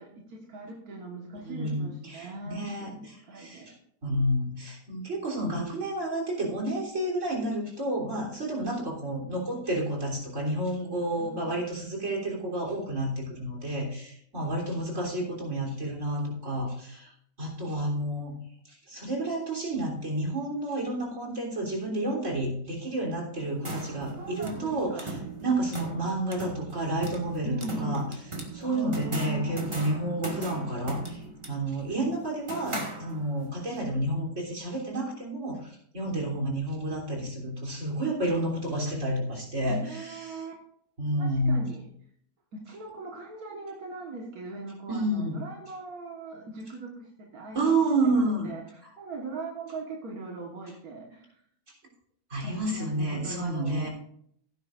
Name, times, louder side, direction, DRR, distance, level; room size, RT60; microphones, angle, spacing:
voice 1, 0.0-3.7 11.0-11.6 24.2-25.2 27.4-28.1 28.6-29.7 39.7-40.5 41.2-41.9 42.5-47.7 48.0-51.4 52.4-53.9, right 2 dB, 85° right, -1 dB, 2.0 m, -40 dB
voice 2, 1.4-2.9 3.4-3.7 4.0-17.1 17.4-18.3 18.7-28.0 28.5-31.2 31.5-40.4 41.0-41.7 44.9-45.4 47.5-48.5 52.3-53.9, right 1 dB, 55° right, -2 dB, 3.8 m, -30 dB
sound 1, 23.4-33.5, right 2 dB, 20° right, 1.7 m, -38 dB
16.5 x 9.7 x 2.5 m, 0.66 s
omnidirectional pair, 1.5 m